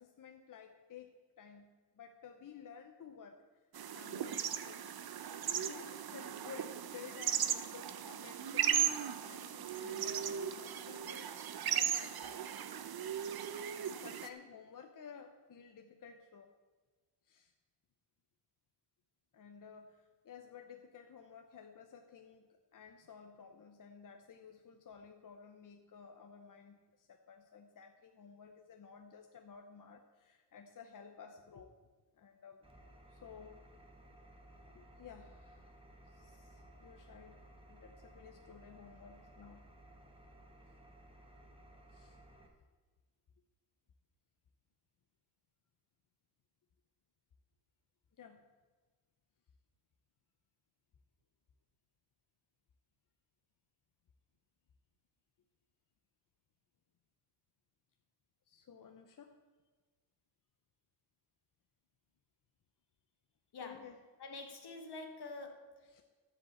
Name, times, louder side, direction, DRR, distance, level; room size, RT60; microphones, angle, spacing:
voice 1, 0.0-3.4 3.9-4.8 5.6-12.4 13.8-16.5 17.2-17.5 19.3-31.8 32.1-32.7 33.1-33.6 34.7-35.7 36.1-39.7 41.9-42.2 48.2-48.5 58.5-59.3 63.6-64.0 65.9-66.0, left 6 dB, 50° left, 5 dB, 0.8 m, -54 dB
sound 1, 3.7-14.3, right 9 dB, 65° right, 0.7 m, -37 dB
Engine, 32.6-42.5, right 1 dB, 15° right, 1.4 m, -58 dB
voice 2, 63.5-63.9 64.2-66.0, left 3 dB, 75° left, 4 dB, 1.6 m, -47 dB
13.5 x 5.2 x 7.7 m, 1.4 s
wide cardioid pair, 130°, 40 cm